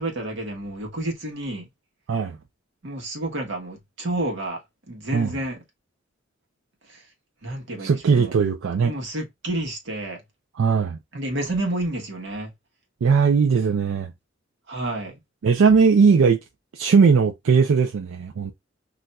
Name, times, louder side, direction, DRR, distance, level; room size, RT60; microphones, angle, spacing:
voice 1, 0.0-1.7 2.8-4.6 4.9-5.6 6.9-7.0 7.4-8.3 8.8-10.2 11.1-12.5 14.7-15.2, right 1 dB, 65° right, 1.0 m, -30 dB
voice 2, 7.8-8.9 10.6-11.0 13.0-14.1 15.4-16.4 16.7-18.5, right 5 dB, 85° right, 0.4 m, -19 dB
2.5 x 2.2 x 3.9 m
head